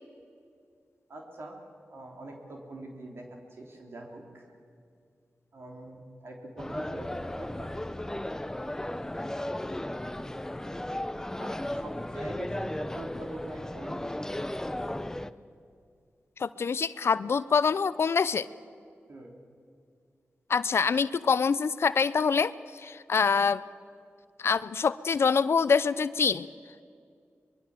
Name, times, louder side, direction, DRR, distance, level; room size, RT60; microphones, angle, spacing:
voice 1, 1.1-1.6 1.9-4.5 5.5-7.8 11.4-14.3 19.1-19.3, right 1 dB, 65° right, 1 dB, 3.4 m, -43 dB
sound 1, 6.6-15.3, left 1 dB, 10° left, 0.7 m, -35 dB
voice 2, 16.4-18.5 20.5-23.6 24.4-26.5, left 5 dB, 65° left, 16 dB, 0.5 m, -25 dB
23.5 x 22.0 x 7.4 m, 2.3 s
cardioid pair, 70°, 5 cm